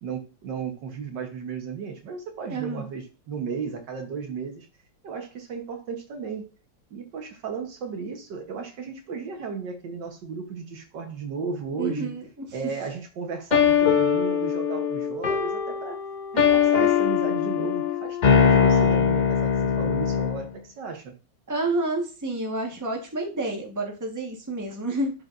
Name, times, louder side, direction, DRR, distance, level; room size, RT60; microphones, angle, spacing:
voice 1, 0.0-4.7 5.0-6.4 6.9-12.2 12.5-16.0 16.3-21.1, right 5 dB, 70° right, 4 dB, 1.7 m, -34 dB
voice 2, 2.5-2.9 11.8-12.3 12.6-12.7 21.5-25.1, right 2 dB, 10° right, 1 dB, 1.3 m, -29 dB
sound 1, 13.5-20.5, left 7 dB, 75° left, 0.4 m, -22 dB
11.0 x 4.8 x 2.6 m, 0.33 s
omnidirectional pair, 2.0 m